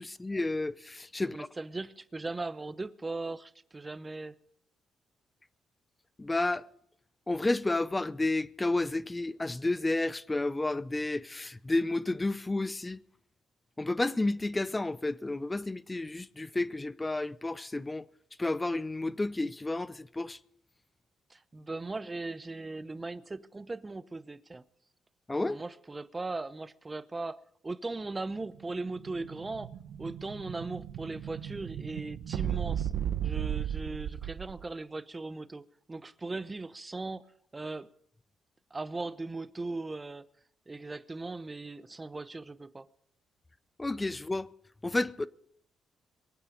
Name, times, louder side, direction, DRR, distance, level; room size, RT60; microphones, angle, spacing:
voice 1, 0.0-1.5 6.2-6.6 7.3-13.0 13.8-18.0 18.4-20.4 25.3-25.6 43.8-44.5 44.8-45.3, left 2 dB, 15° left, 0.6 m, -31 dB
voice 2, 1.2-4.3 21.3-24.6 25.5-27.4 27.6-29.7 30.0-32.9 33.2-37.2 37.5-37.9 38.7-40.3 40.7-42.9, right 3 dB, 20° right, 0.7 m, -38 dB
Explosion, 28.6-34.7, right 10 dB, 80° right, 0.9 m, -35 dB
23.0 x 8.9 x 5.1 m
cardioid pair, 90°, 0 cm